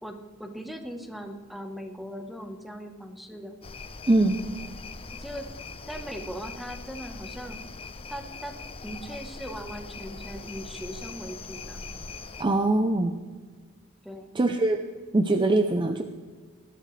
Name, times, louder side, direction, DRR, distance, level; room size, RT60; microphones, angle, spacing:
voice 1, 0.0-3.5 5.2-5.5 5.8-7.6 8.1-8.5 8.8-11.8 14.0-14.3, equal, ahead, 5 dB, 1.1 m, -39 dB
sound 1, 3.6-12.4, left 4 dB, 25° left, 0.6 m, -41 dB
voice 2, 12.4-13.2 14.3-14.8 15.1-16.0, right 2 dB, 20° right, 7 dB, 0.5 m, -22 dB
19.0 x 12.0 x 3.3 m, 1.5 s
head